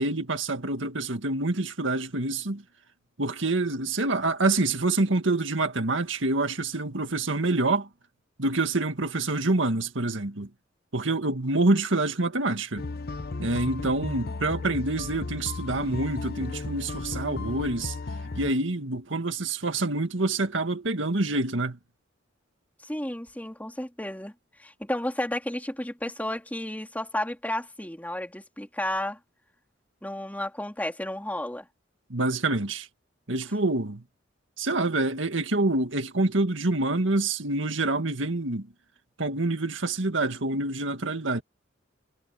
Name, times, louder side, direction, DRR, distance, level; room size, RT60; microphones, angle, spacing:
voice 1, 0.0-2.6 3.2-7.9 8.4-10.5 10.9-12.8 13.4-18.0 18.3-21.8 32.1-32.9 33.3-34.0 34.6-38.7 39.2-41.4, right 2 dB, 80° right, 2.0 m, -26 dB
sound 1, 12.8-18.5, left 3 dB, 55° left, 0.8 m, -35 dB
voice 2, 22.8-24.3 24.6-29.2 30.0-31.6, left 1 dB, 10° left, 3.2 m, -32 dB
head